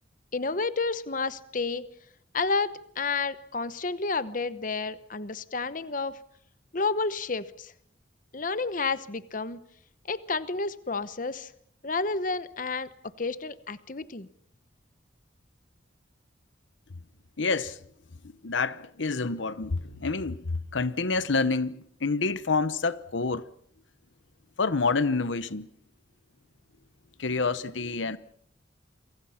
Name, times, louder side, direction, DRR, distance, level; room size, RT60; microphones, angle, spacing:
voice 1, 0.3-1.8 2.3-6.2 6.7-7.7 8.3-9.6 10.1-11.5 11.8-12.9 13.2-14.3, left 4 dB, 45° left, 1.0 m, -30 dB
voice 2, 17.4-17.8 18.4-23.4 24.6-25.7 27.2-28.2, left 4 dB, 80° left, 1.0 m, -28 dB
29.0 x 24.5 x 5.8 m
head